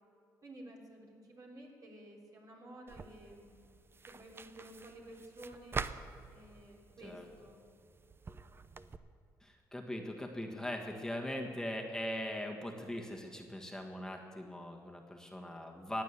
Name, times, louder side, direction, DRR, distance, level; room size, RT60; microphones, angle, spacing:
voice 1, 0.4-3.6 4.1-5.8 6.3-7.6, right 1 dB, 50° right, -1 dB, 3.5 m, -52 dB
sound 1, 2.9-9.0, right 4 dB, 35° right, 0.7 m, -46 dB
voice 2, 9.4-16.0, left 1 dB, 10° left, 1 dB, 1.6 m, -40 dB
15.5 x 9.2 x 8.5 m, 2.4 s
cardioid pair, 75°, 7 cm